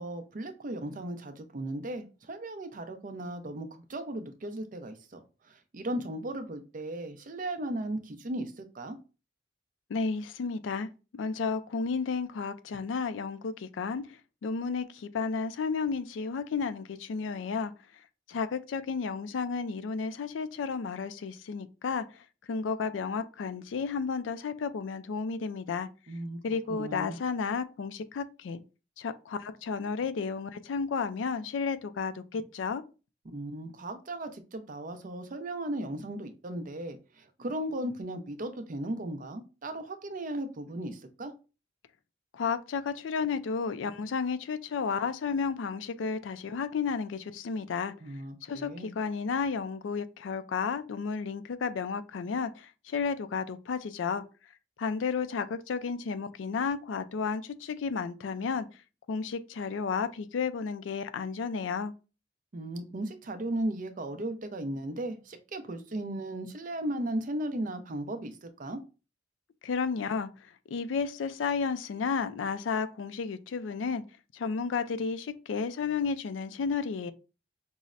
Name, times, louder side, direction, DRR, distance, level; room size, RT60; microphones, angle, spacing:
voice 1, 0.0-5.2 5.5-9.0 26.1-26.4 26.7-27.2 33.2-41.3 48.0-48.9 62.5-68.8, right 1 dB, 45° right, 0.5 m, -36 dB
voice 2, 9.9-10.9 11.2-14.0 14.4-17.7 18.3-22.0 22.5-25.9 26.4-28.6 29.0-32.8 42.3-47.9 48.4-54.2 54.8-58.7 59.1-61.9 69.6-70.3 70.7-74.0 74.3-77.1, left 5 dB, 90° left, 0.4 m, -32 dB
5.4 x 2.0 x 2.4 m
head